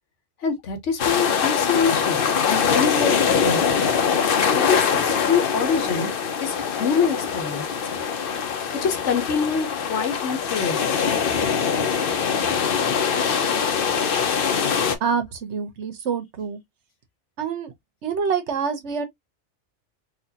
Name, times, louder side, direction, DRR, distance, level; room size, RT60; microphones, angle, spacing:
voice 1, 0.4-3.8 4.5-6.1 6.4-7.6 7.9-8.0 8.8-11.3, left 6 dB, 75° left, 1.3 m, -25 dB
sound 1, 1.0-15.0, left 6 dB, 55° left, 0.8 m, -23 dB
voice 2, 15.0-16.6 17.4-17.7 18.0-19.1, right 6 dB, 70° right, 1.1 m, -26 dB
4.1 x 2.5 x 2.7 m
omnidirectional pair, 1.2 m